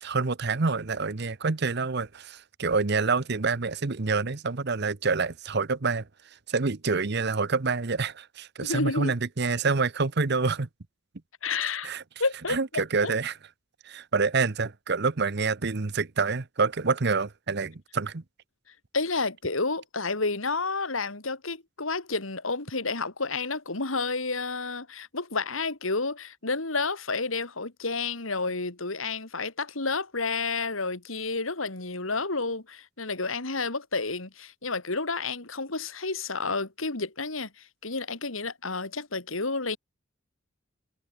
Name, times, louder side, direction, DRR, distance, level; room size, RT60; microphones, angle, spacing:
voice 1, 0.0-6.1 6.5-10.7 11.8-12.0 12.5-13.4 13.8-18.2, right 4 dB, 55° right, 0.9 m, -27 dB
voice 2, 8.6-9.1 11.4-11.9 12.2-13.1 18.9-39.8, left 3 dB, 90° left, 3.1 m, -30 dB
head